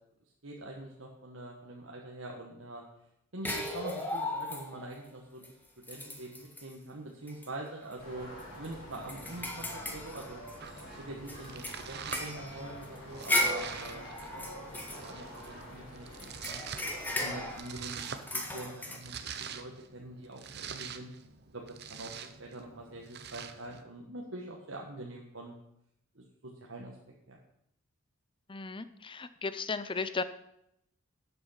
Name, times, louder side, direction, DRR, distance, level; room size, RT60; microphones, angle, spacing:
voice 1, 0.4-2.8 3.3-5.6 5.9-8.3 8.5-10.4 11.0-16.6 17.2-21.1 21.5-22.1 22.4-25.5 26.1-27.0 27.3-27.4, right 1 dB, 70° right, -1 dB, 1.5 m, -44 dB
sound 1, 3.4-4.9 5.4-5.5 5.8-6.7 7.3-7.5 7.8-7.9 8.4-10.8 11.3-15.7 16.2-19.0, left 1 dB, 10° left, 1.6 m, -36 dB
sound 2, 8.0-17.6, equal, 50° left, 5.4 m, -47 dB
Domestic sounds home sounds, 10.6-23.8, right 7 dB, 55° right, 0.8 m, -46 dB
voice 2, 28.5-30.2, left 4 dB, 25° left, 13 dB, 0.6 m, -35 dB
12.0 x 8.0 x 5.7 m, 0.79 s
head